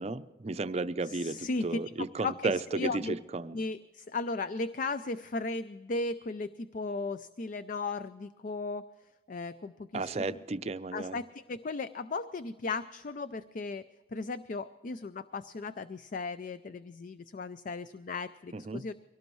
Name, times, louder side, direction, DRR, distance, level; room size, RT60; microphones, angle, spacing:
voice 1, 0.0-3.6 9.9-11.2 18.5-18.8, right 3 dB, 35° right, 12 dB, 0.5 m, -34 dB
voice 2, 1.0-1.8 2.2-3.1 3.5-8.8 9.3-10.4 10.9-13.8 14.1-18.9, left 3 dB, 45° left, 13 dB, 0.4 m, -36 dB
23.5 x 17.5 x 3.1 m, 1.3 s
head